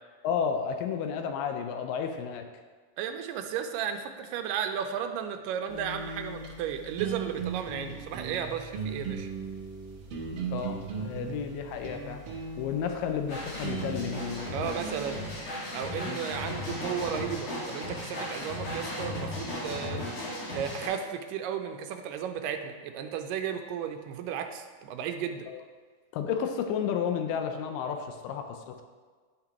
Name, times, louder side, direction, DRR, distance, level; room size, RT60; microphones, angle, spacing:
voice 1, 0.2-2.5 10.5-12.2 12.6-14.5 16.0-16.2 25.5-25.6 26.1-28.8, left 7 dB, 85° left, 5 dB, 2.3 m, -32 dB
voice 2, 3.0-9.3 14.5-15.3 15.7-20.0 20.5-25.5, right 8 dB, 90° right, 6 dB, 2.2 m, -34 dB
sound 1, 5.7-15.4, right 5 dB, 60° right, 1.5 m, -38 dB
sound 2, 13.3-20.9, left 1 dB, 65° left, 3.4 m, -36 dB
10.0 x 5.9 x 2.9 m, 1.5 s
omnidirectional pair, 3.8 m